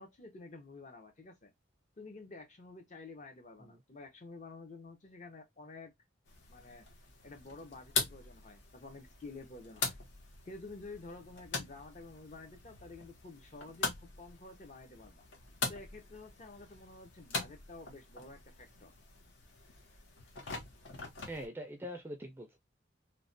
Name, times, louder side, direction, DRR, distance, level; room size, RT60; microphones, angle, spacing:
voice 1, 0.0-1.5 2.0-5.9 6.5-6.9 7.2-10.0 10.5-15.3 15.7-18.9, left 3 dB, 35° left, 0.6 m, -50 dB
sound 1, 6.2-21.5, left 4 dB, 70° left, 0.8 m, -42 dB
voice 2, 21.3-22.6, equal, 10° right, 0.3 m, -43 dB
3.1 x 2.1 x 2.5 m
head